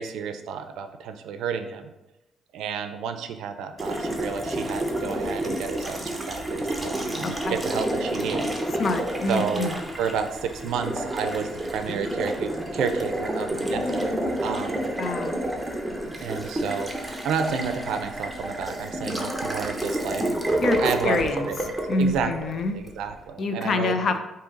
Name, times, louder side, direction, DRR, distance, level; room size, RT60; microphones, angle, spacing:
voice 1, 0.0-1.9 2.5-8.5 9.3-14.1 14.4-14.9 16.2-20.2 20.8-21.7 22.0-23.9, right 6 dB, 85° right, 8 dB, 0.4 m, -31 dB
Water tap faucet, 3.8-22.9, right 1 dB, 10° right, 0.8 m, -29 dB
voice 2, 7.2-7.6 8.8-9.8 15.0-15.4 20.6-21.5 21.9-22.8 23.4-24.2, left 3 dB, 55° left, 8 dB, 0.5 m, -26 dB
5.1 x 2.7 x 3.8 m, 0.99 s
cardioid pair, 90°, 0 cm